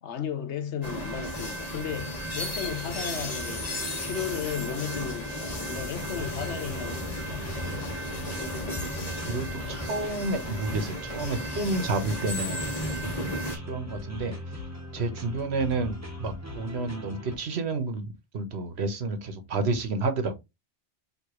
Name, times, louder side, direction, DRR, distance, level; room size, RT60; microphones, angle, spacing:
voice 1, 0.0-7.5, left 8 dB, 75° left, 1.1 m, -35 dB
sound 1, 0.8-13.6, equal, 35° left, 1.4 m, -34 dB
sound 2, 3.1-17.4, left 2 dB, 15° right, 1.2 m, -40 dB
voice 2, 9.2-12.6 13.2-14.4 14.9-20.3, right 3 dB, 65° right, 1.2 m, -30 dB
4.8 x 2.9 x 3.0 m
omnidirectional pair, 1.2 m